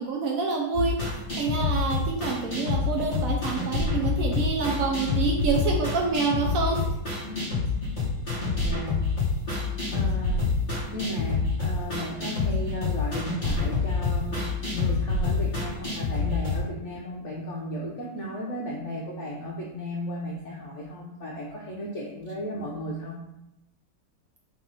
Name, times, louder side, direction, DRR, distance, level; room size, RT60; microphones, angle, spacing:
voice 1, 0.0-6.8, right 4 dB, 70° right, 0 dB, 0.8 m, -27 dB
sound 1, 0.7-16.6, left 4 dB, 25° left, 1.8 m, -27 dB
voice 2, 8.5-9.0 9.9-10.4 10.9-23.2, equal, 60° left, -4 dB, 0.8 m, -35 dB
3.8 x 3.1 x 3.9 m, 0.90 s
omnidirectional pair, 2.0 m